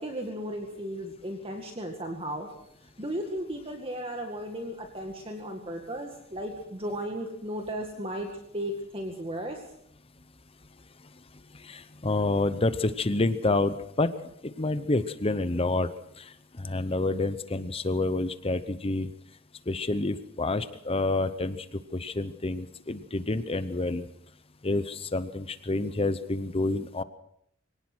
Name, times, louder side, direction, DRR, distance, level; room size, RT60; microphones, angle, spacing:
voice 1, 0.0-2.5 3.0-8.3 8.5-9.6, equal, 30° right, 3 dB, 2.0 m, -35 dB
voice 2, 11.5-14.1 14.4-19.1 19.7-24.0 24.6-27.0, left 2 dB, 30° left, 12 dB, 0.8 m, -28 dB
24.0 x 18.0 x 6.2 m, 0.72 s
head